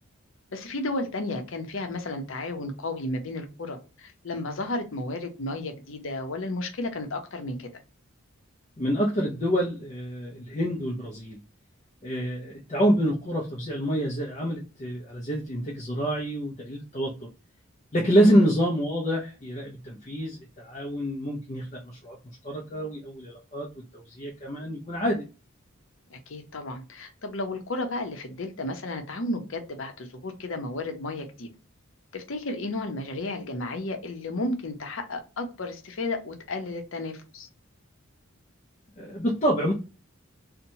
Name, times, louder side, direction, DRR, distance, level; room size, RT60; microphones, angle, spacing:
voice 1, 0.5-7.7 18.2-18.5 26.1-31.5 32.1-37.5, left 2 dB, 70° left, 6 dB, 0.7 m, -33 dB
voice 2, 8.8-11.4 12.0-17.3 17.9-22.2 22.4-23.7 23.9-25.3 39.0-39.7, equal, 30° left, -3 dB, 0.5 m, -27 dB
2.8 x 2.1 x 2.7 m, 0.32 s
head